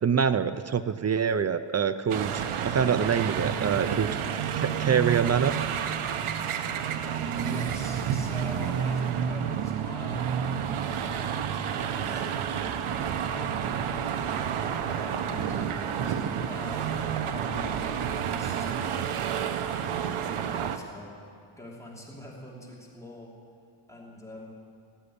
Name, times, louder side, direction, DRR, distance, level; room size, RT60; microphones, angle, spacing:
voice 1, 0.0-4.2 4.6-5.5, right 7 dB, 35° right, 12 dB, 0.4 m, -25 dB
sound 1, 2.1-20.8, right 8 dB, 80° right, 1.0 m, -30 dB
voice 2, 7.4-12.2 13.2-13.9 14.7-19.1 19.8-23.3 23.9-24.5, left 1 dB, 5° left, -4 dB, 3.0 m, -44 dB
17.0 x 8.0 x 10.0 m, 2.3 s
wide cardioid pair, 155°, 49 cm